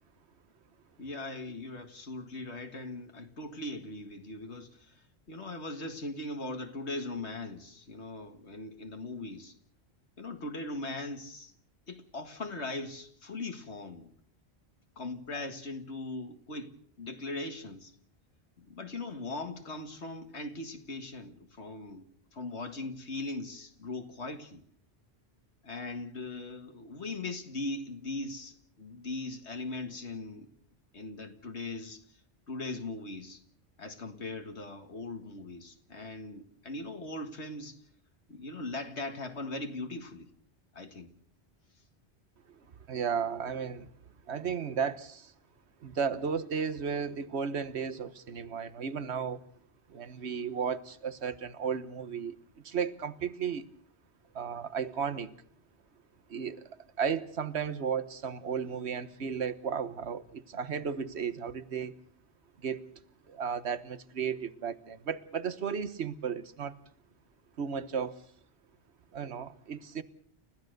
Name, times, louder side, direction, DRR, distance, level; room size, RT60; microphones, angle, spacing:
voice 1, 1.0-9.6 10.2-11.5 11.9-14.1 15.0-17.9 18.6-22.0 22.3-24.6 25.6-30.5 30.9-32.0 32.5-33.4 33.8-37.8 38.3-40.3 40.7-41.1, left 2 dB, 80° left, 2.2 m, -40 dB
voice 2, 42.9-43.9 44.3-45.3 45.8-49.4 49.9-52.4 52.6-53.6 54.3-55.3 56.3-56.7 57.0-62.0 62.6-62.8 63.3-66.7 67.6-68.2 69.1-70.0, right 6 dB, 75° right, 1.4 m, -34 dB
29.5 x 15.0 x 6.6 m
omnidirectional pair, 1.1 m